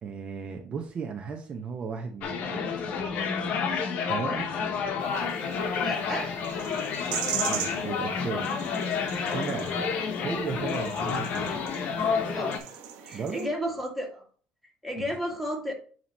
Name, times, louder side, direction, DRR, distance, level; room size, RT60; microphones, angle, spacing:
voice 1, 0.0-2.7 4.0-4.5 7.4-8.5 9.3-11.6 13.1-13.5 15.0-15.1, right 6 dB, 40° right, 3 dB, 0.8 m, -35 dB
sound 1, 2.2-12.6, left 6 dB, 60° left, 1.2 m, -30 dB
sound 2, 5.0-13.5, right 9 dB, 85° right, 1.3 m, -39 dB
voice 2, 5.8-6.3 10.0-10.2 12.2-12.6 13.0-14.2 14.8-15.7, equal, ahead, -1 dB, 2.0 m, -33 dB
8.8 x 3.0 x 4.2 m, 0.43 s
cardioid pair, 120°, 3 cm